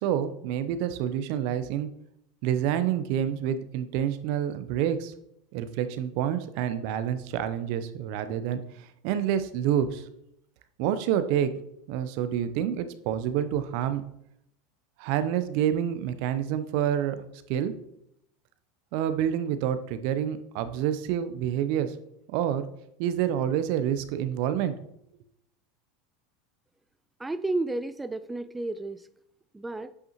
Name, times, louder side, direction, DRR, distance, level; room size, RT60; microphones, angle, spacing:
voice 1, 0.0-1.9 2.4-5.1 5.5-10.0 10.8-11.5 11.9-14.0 15.0-17.7 18.9-21.9 22.3-22.7 23.0-24.7, right 10 dB, 65° right, 11 dB, 0.6 m, -28 dB
voice 2, 27.2-29.1 29.5-29.9, right 2 dB, 10° right, 12 dB, 0.3 m, -32 dB
8.2 x 5.5 x 3.0 m, 0.76 s
hypercardioid pair, 90°, 0 cm